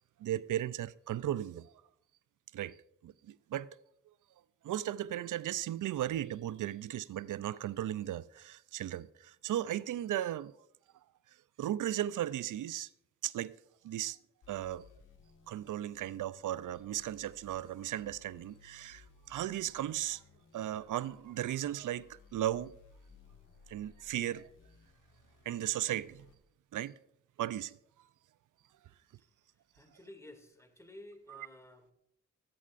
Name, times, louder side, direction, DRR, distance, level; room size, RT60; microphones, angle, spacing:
voice 1, 0.2-1.7 2.5-2.8 3.0-3.7 4.6-10.5 11.6-12.9 13.2-13.6 13.8-14.2 14.5-14.9 15.5-20.2 20.5-22.7 23.7-24.5 25.5-26.3 26.7-26.9 27.4-27.8 31.3-31.5, right 12 dB, 80° right, 0.5 m, -36 dB
sound 1, 14.4-26.3, left 5 dB, 85° left, 1.7 m, -61 dB
voice 2, 29.7-31.9, left 1 dB, 10° left, 2.3 m, -53 dB
23.5 x 8.4 x 2.5 m
cardioid pair, 50°, 31 cm